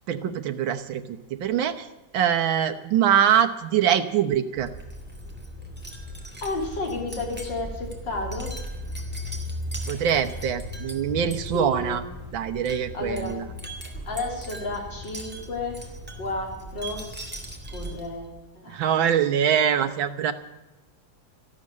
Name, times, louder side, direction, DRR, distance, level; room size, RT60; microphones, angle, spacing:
voice 1, 0.1-1.9 2.1-4.7 9.9-12.0 12.3-13.5 18.7-20.3, right 9 dB, 85° right, 7 dB, 1.8 m, -23 dB
Wind chime, 4.5-18.3, equal, 5° right, 2.4 m, -37 dB
voice 2, 6.4-8.6 11.5-12.0 12.9-13.4 14.1-15.8 16.2-17.1 17.7-18.3 18.5-18.8, left 2 dB, 70° left, 0 dB, 4.1 m, -32 dB
13.5 x 12.0 x 8.5 m, 1.0 s
omnidirectional pair, 2.1 m